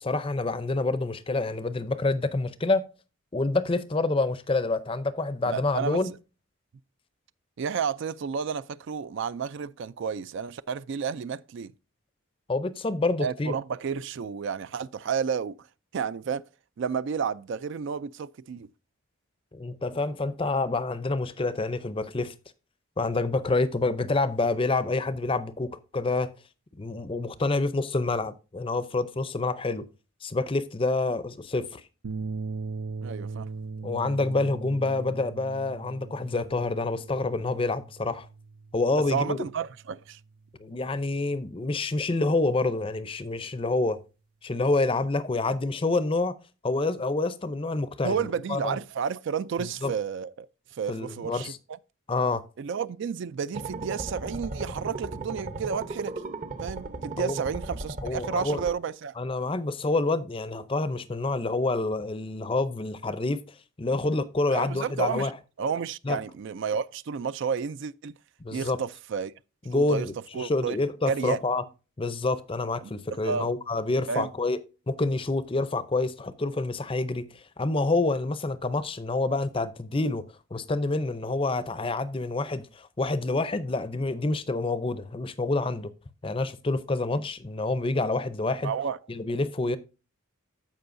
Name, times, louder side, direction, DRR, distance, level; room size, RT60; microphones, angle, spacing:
voice 1, 0.0-2.8 3.3-6.1 12.5-13.5 19.5-22.3 23.0-26.3 26.8-29.9 30.2-31.8 33.8-38.3 38.7-39.4 40.6-44.0 44.4-46.4 46.6-48.8 49.6-49.9 50.9-51.6 52.1-52.4 57.2-57.4 58.0-58.6 59.2-63.4 63.8-65.3 66.0-66.2 68.4-68.8 69.7-71.6 72.0-74.6 74.9-80.2 80.5-85.9 86.2-88.7 89.1-89.8, left 2 dB, 25° left, 0.5 m, -27 dB
voice 2, 5.5-6.0 7.6-11.7 13.2-15.7 15.9-16.4 16.8-18.7 33.0-33.5 39.0-40.2 48.0-50.5 50.7-51.5 52.6-56.1 56.6-59.1 64.5-65.3 65.6-68.1 68.5-69.3 69.7-70.1 70.3-70.8 71.1-71.4 72.8-72.9 73.2-73.5 74.1-74.3 88.6-89.0, right 6 dB, 60° right, 0.3 m, -31 dB
sound 1, 32.0-40.5, right 4 dB, 85° right, 0.7 m, -39 dB
sound 2, 53.5-58.7, right 3 dB, 35° right, 0.8 m, -36 dB
14.5 x 5.5 x 2.6 m
head